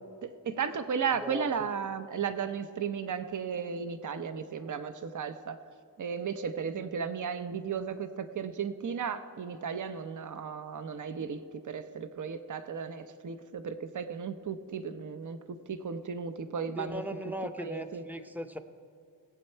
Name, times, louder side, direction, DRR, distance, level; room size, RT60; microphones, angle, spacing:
voice 1, 0.2-5.6 6.0-11.4 11.6-17.0 17.6-18.0, right 6 dB, 50° right, 10 dB, 0.6 m, -35 dB
voice 2, 16.8-18.6, equal, 5° right, 8 dB, 0.6 m, -38 dB
19.0 x 8.0 x 4.4 m, 2.4 s
wide cardioid pair, 110°, 38 cm